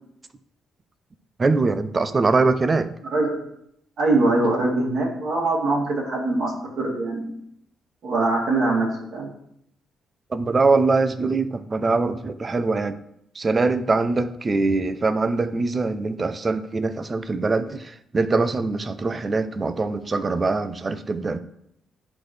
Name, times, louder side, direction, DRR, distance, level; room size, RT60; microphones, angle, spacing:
voice 1, 1.4-2.9 10.3-13.0 13.3-21.4, right 3 dB, 30° right, 0.6 m, -23 dB
voice 2, 3.1-3.5 4.0-7.3 8.0-9.3, right 2 dB, 65° right, 2.6 m, -23 dB
11.0 x 4.0 x 3.3 m
cardioid pair, 90°, 0 cm